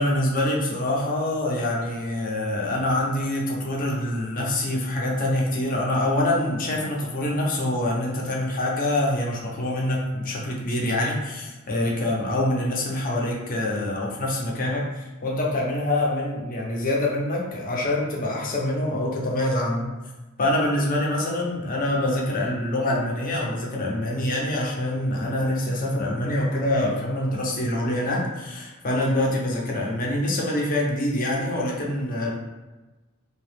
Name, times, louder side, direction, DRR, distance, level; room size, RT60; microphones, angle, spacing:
voice 1, 0.0-20.0 20.4-32.3, left 1 dB, 40° left, -2 dB, 0.6 m, -25 dB
2.8 x 2.3 x 3.3 m, 1.2 s
head